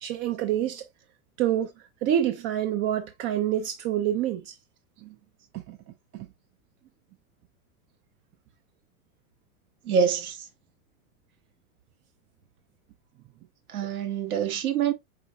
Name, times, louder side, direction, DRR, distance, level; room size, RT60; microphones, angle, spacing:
voice 1, 0.0-0.8 1.4-1.7 2.0-4.6 5.0-5.1 5.5-5.8 6.1-6.3, right 11 dB, 30° right, 0.4 m, -27 dB
voice 2, 9.8-10.5 13.7-14.9, right 7 dB, 70° right, 1.6 m, -26 dB
4.9 x 3.9 x 2.3 m
hypercardioid pair, 110°, 44 cm